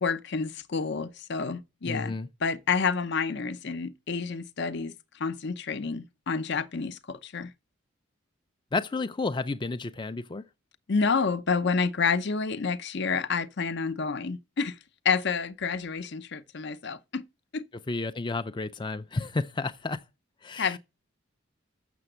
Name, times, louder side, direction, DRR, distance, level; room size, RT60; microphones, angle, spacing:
voice 1, 0.0-2.2 2.4-4.9 5.2-7.5 10.9-14.7 15.0-17.2 17.5-17.7 20.6-20.8, left 5 dB, 60° left, 0.7 m, -29 dB
voice 2, 1.9-2.3 8.7-10.4 17.9-20.0 20.4-20.8, left 3 dB, 25° left, 0.5 m, -31 dB
6.9 x 6.9 x 7.7 m
head